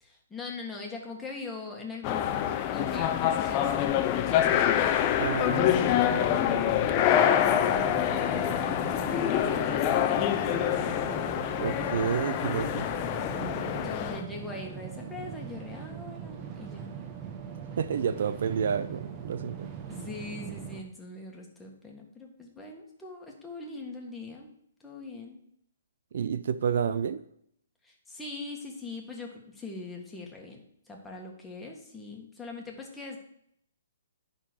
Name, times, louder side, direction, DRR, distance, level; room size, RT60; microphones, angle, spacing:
voice 1, 0.0-4.7 6.9-10.9 13.2-16.9 19.9-24.5 24.8-25.4 27.8-30.6 30.9-33.2, left 3 dB, 5° left, 1.7 m, -41 dB
sound 1, 2.0-14.2, left 10 dB, 30° left, 0.7 m, -26 dB
voice 2, 5.2-6.3 11.6-12.9 17.8-19.7 26.1-27.2, right 7 dB, 60° right, 0.4 m, -30 dB
sound 2, 6.1-20.8, right 8 dB, 25° right, 1.2 m, -41 dB
10.0 x 4.0 x 6.4 m
hypercardioid pair, 130°, 0 cm